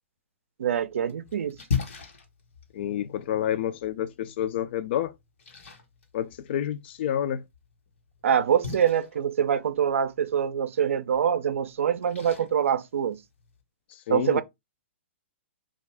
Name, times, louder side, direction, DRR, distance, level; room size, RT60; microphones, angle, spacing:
Splash splatter, 0.6-13.6, left 6 dB, 70° left, 1.1 m, -40 dB
voice 1, 0.6-1.6 8.2-13.2 14.1-14.4, right 8 dB, 80° right, 0.4 m, -25 dB
voice 2, 2.7-5.1 6.1-7.4 14.1-14.4, left 10 dB, 55° left, 0.3 m, -29 dB
2.5 x 2.3 x 3.3 m
hypercardioid pair, 145°, 7 cm